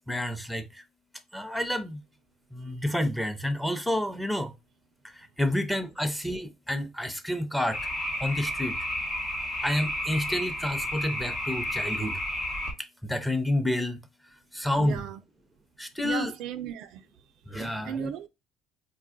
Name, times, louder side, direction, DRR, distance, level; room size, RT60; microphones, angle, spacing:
voice 1, 0.1-0.6 1.3-2.0 2.5-4.5 5.4-7.8 8.2-8.7 9.6-12.1 13.1-14.0 14.6-15.0 15.8-16.3 17.5-18.1, left 1 dB, 5° left, 0.7 m, -29 dB
sound 1, 7.7-12.7, left 1 dB, 75° left, 1.5 m, -32 dB
voice 2, 14.8-15.2 16.0-17.1 17.5-18.3, right 9 dB, 70° right, 0.3 m, -36 dB
4.2 x 2.3 x 2.5 m
supercardioid pair, 80°, 0 cm